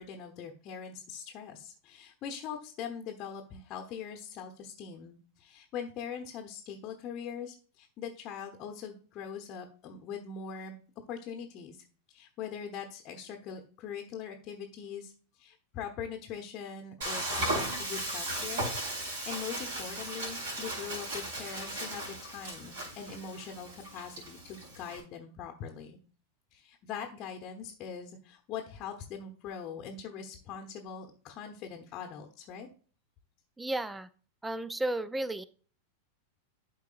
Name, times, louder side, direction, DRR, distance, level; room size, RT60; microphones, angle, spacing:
voice 1, 0.0-10.8 11.1-18.7 19.0-26.0 26.5-32.7, left 7 dB, 35° left, 4 dB, 1.0 m, -42 dB
Frying (food), 17.0-25.0, right 1 dB, 60° right, 3.6 m, -36 dB
voice 2, 33.6-34.1 34.4-35.4, right 1 dB, 10° right, 17 dB, 0.4 m, -33 dB
12.0 x 4.6 x 2.5 m, 0.40 s
figure-of-eight pair, 90°, 0 cm